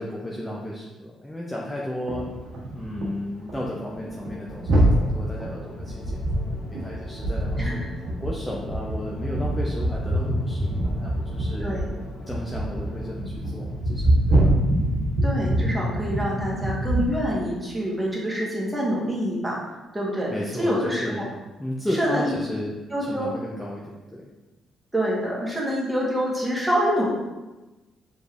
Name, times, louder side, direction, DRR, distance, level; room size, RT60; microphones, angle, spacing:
voice 1, 0.0-2.3 2.7-6.2 6.7-7.8 8.2-11.7 12.3-14.0 14.3-14.4 20.3-21.3 21.6-24.3, left 1 dB, 10° left, -4 dB, 0.6 m, -33 dB
sound 1, 2.1-3.2 3.5-3.7 4.0-17.1, right 1 dB, 80° right, 1.0 m, -25 dB
sound 2, 3.9-13.2, left 2 dB, 55° left, 0.6 m, -43 dB
voice 2, 11.6-11.9 15.2-19.6 19.9-20.3 20.6-21.2 22.0-22.3 22.9-23.3 24.9-27.1, equal, 10° right, -5 dB, 1.4 m, -26 dB
5.0 x 3.3 x 2.5 m, 1.1 s
cardioid pair, 90°, 0 cm